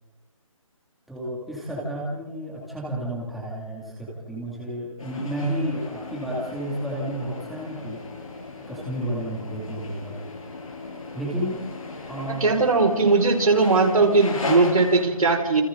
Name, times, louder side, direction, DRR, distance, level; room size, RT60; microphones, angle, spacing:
voice 1, 1.1-8.0 8.7-10.1 11.1-11.6 12.1-12.5, right 1 dB, ahead, -7 dB, 2.6 m, -31 dB
sound 1, 5.0-15.0, left 3 dB, 75° left, 7.9 m, -37 dB
voice 2, 12.4-15.6, right 3 dB, 85° right, 2 dB, 5.7 m, -19 dB
29.0 x 27.5 x 3.9 m, 1.2 s
hypercardioid pair, 175°, 18 cm